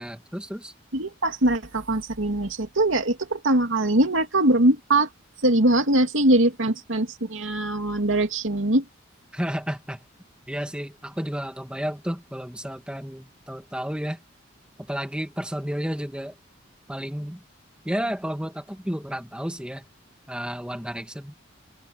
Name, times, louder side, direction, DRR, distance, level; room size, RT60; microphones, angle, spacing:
voice 1, 0.0-0.7 9.3-10.0 10.5-14.2 14.8-16.4 16.9-17.4 17.9-19.8 20.3-21.3, equal, 5° right, 1.8 m, -32 dB
voice 2, 0.9-5.1 5.4-8.8, right 1 dB, 80° right, 2.5 m, -22 dB
head